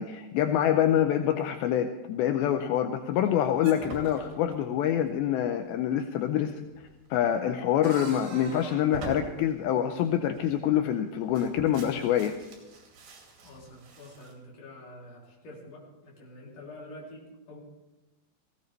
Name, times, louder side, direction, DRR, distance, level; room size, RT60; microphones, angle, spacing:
voice 1, 0.0-6.6 7.1-12.3, left 10 dB, 85° left, 6 dB, 2.5 m, -26 dB
sound 1, 3.1-5.2 6.7-10.9 11.3-14.3, right 3 dB, 65° right, 4.2 m, -45 dB
voice 2, 13.4-17.6, left 1 dB, 45° left, -4 dB, 4.0 m, -47 dB
18.5 x 16.0 x 3.3 m, 1.1 s
omnidirectional pair, 4.4 m